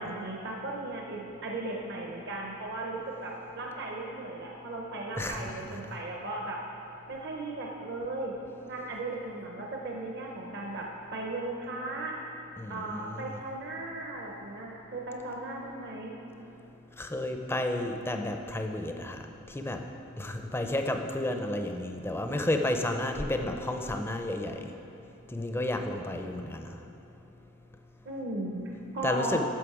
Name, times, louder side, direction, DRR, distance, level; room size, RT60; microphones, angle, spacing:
voice 1, 0.0-6.6 7.1-8.3 8.7-10.9 11.1-12.1 12.7-16.2 28.1-29.4, right 2 dB, 50° right, -1 dB, 0.8 m, -36 dB
voice 2, 5.2-6.0 12.6-13.3 17.0-19.8 20.2-24.7 25.3-26.8 29.0-29.4, left 1 dB, 10° left, 4 dB, 0.5 m, -32 dB
11.0 x 6.6 x 4.9 m, 2.9 s
head